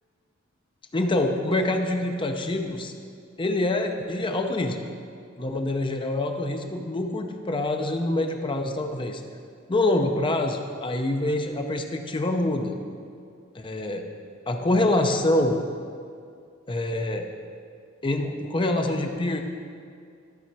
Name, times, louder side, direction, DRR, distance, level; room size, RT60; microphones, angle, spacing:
voice 1, 0.9-2.9 3.4-4.8 5.4-9.2 9.7-12.7 13.5-14.0 14.5-15.6 16.7-17.3 18.0-19.4, left 1 dB, 25° left, 4 dB, 0.6 m, -25 dB
12.5 x 4.2 x 4.6 m, 2.3 s
head